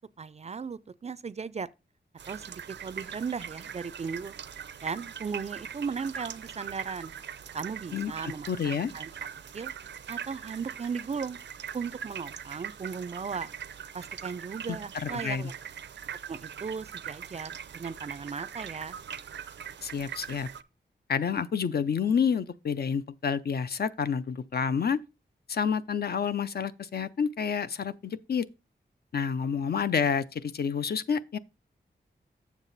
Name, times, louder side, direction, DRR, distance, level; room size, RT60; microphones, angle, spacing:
voice 1, 0.2-1.7 2.3-4.4 4.8-7.1 7.5-9.1 9.5-9.7 10.1-11.4 11.7-13.5 13.9-15.5 16.3-19.0, right 5 dB, 35° right, 0.4 m, -36 dB
sound 1, 2.2-20.6, right 8 dB, 85° right, 0.5 m, -41 dB
voice 2, 7.9-8.9 14.7-15.5 19.8-20.5 21.1-25.0 25.5-28.5 29.1-31.4, left 6 dB, 60° left, 0.5 m, -29 dB
7.5 x 7.0 x 4.0 m
wide cardioid pair, 135°, 18 cm